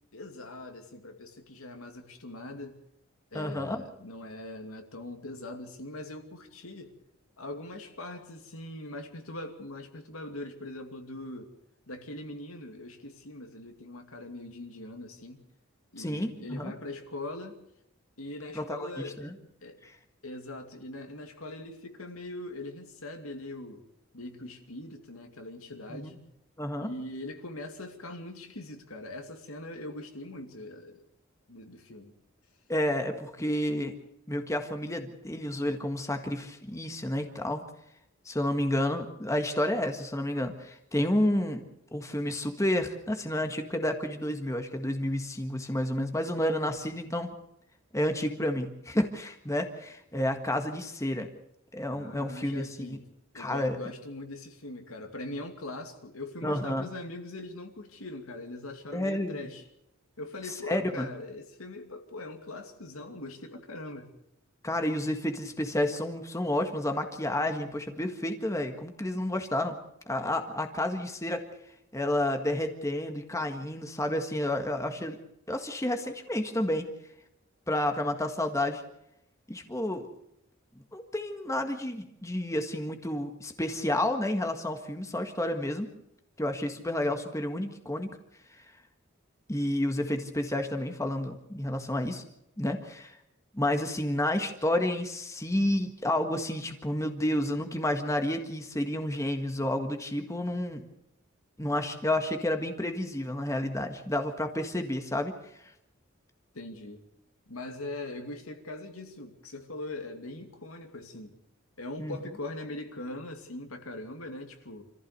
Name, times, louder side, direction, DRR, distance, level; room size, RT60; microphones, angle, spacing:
voice 1, 0.1-2.8 3.3-6.9 7.4-11.5 11.9-15.4 15.9-17.6 18.2-19.3 19.6-19.8 20.2-23.8 24.1-26.2 26.8-31.0 31.5-32.1 51.9-53.1 53.3-59.6 60.2-64.1 106.5-107.0 107.5-111.4 111.8-114.8, left 2 dB, 90° left, 2.6 m, -41 dB
voice 2, 3.3-3.8 16.0-16.7 18.6-18.9 19.2-19.3 19.8-19.9 25.9-26.2 26.6-26.9 32.7-34.0 34.3-37.6 38.3-41.6 41.9-47.4 47.9-51.3 51.7-53.0 53.4-53.8 56.4-56.9 58.9-59.4 60.7-61.1 64.6-69.8 70.1-71.5 71.9-75.2 75.5-76.9 77.7-78.8 79.5-80.1 80.9-85.9 86.4-88.1 89.5-92.2 92.6-93.2 93.5-100.9 101.6-105.3 112.0-112.2, left 1 dB, 15° left, 1.7 m, -30 dB
26.5 x 15.0 x 6.8 m
head